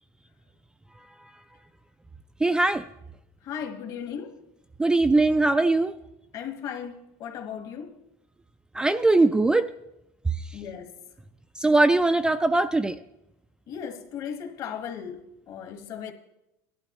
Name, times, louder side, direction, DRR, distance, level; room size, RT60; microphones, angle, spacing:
voice 1, 2.4-2.8 4.8-5.9 8.7-9.7 11.6-13.0, right 2 dB, 10° right, 0.3 m, -21 dB
voice 2, 3.4-4.4 6.3-8.0 10.5-10.9 13.7-16.1, left 8 dB, 45° left, 1.5 m, -36 dB
16.5 x 12.0 x 3.0 m
supercardioid pair, 125°, 9 cm